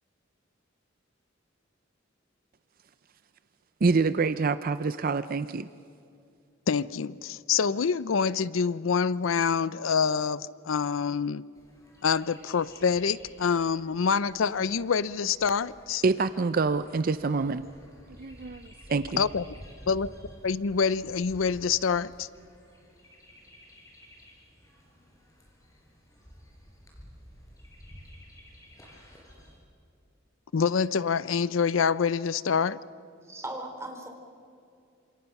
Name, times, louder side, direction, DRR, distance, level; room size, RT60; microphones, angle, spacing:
voice 1, 3.8-5.7 16.0-17.6 18.2-19.2, right 4 dB, 45° right, 13 dB, 0.5 m, -26 dB
voice 2, 6.7-11.4 12.0-16.0 19.2-19.4 19.9-20.1 20.4-22.3 30.5-32.8, left 6 dB, 85° left, 18 dB, 0.5 m, -26 dB
Chirp tweet, 11.5-29.6, equal, 15° left, 5.0 m, -52 dB
voice 3, 33.2-34.1, right 1 dB, 15° right, 3 dB, 3.3 m, -38 dB
28.0 x 26.5 x 5.9 m, 2.5 s
head